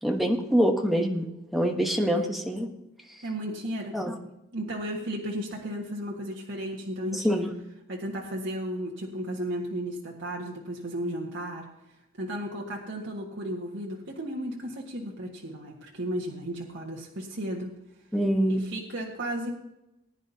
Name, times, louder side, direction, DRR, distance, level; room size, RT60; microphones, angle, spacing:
voice 1, 0.0-2.7 3.9-4.1 7.1-7.5 18.1-18.6, equal, ahead, 1 dB, 1.1 m, -25 dB
voice 2, 3.2-3.9 4.5-7.3 7.9-11.7 12.2-17.7 18.7-19.5, equal, 60° right, -2 dB, 1.6 m, -34 dB
19.5 x 9.9 x 2.8 m, 0.90 s
head